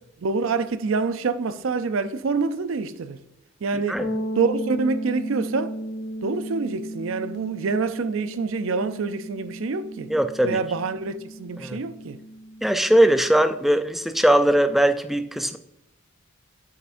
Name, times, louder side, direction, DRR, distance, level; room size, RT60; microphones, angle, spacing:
voice 1, 0.2-3.2 3.6-4.0 4.4-5.7 6.2-10.1 10.4-12.2, right 4 dB, 70° right, 0.4 m, -26 dB
sound 1, 4.0-13.7, equal, 75° left, 1.4 m, -35 dB
voice 2, 10.1-10.6 11.6-11.8 12.6-15.6, right 1 dB, ahead, 0.3 m, -20 dB
8.5 x 7.9 x 2.5 m
head